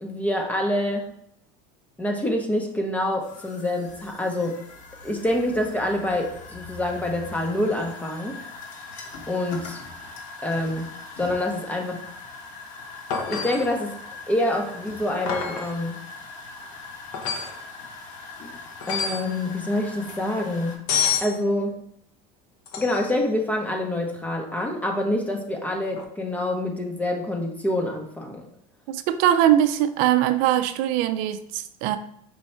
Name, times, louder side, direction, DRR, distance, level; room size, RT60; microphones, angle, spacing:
voice 1, 0.0-1.1 2.0-4.6 5.0-8.4 9.3-9.8 10.4-10.9 11.2-12.0 13.3-14.0 14.3-16.0 18.9-20.8 21.2-21.8 22.8-28.5, left 1 dB, 10° left, 1 dB, 0.6 m, -26 dB
sound 1, 3.2-20.8, left 3 dB, 50° left, 1.2 m, -41 dB
sound 2, 13.1-13.7 15.3-15.7 17.1-17.6 18.8-19.3 20.9-21.3 22.7-23.1 25.9-26.0, left 7 dB, 75° left, 0.9 m, -27 dB
voice 2, 28.9-32.0, right 11 dB, 65° right, 11 dB, 0.4 m, -21 dB
5.2 x 2.3 x 4.3 m, 0.69 s
supercardioid pair, 130°, 16 cm